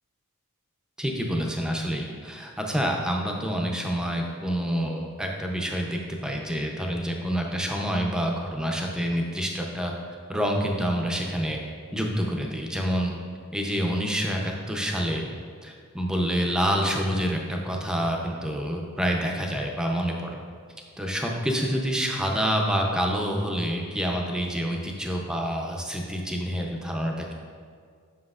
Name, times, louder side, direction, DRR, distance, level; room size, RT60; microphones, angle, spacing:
voice 1, 1.0-9.9 10.3-11.6 11.9-13.1 13.5-15.3 15.6-20.3 21.0-27.3, equal, 5° right, 0 dB, 0.5 m, -27 dB
7.5 x 5.7 x 2.4 m, 2.1 s
head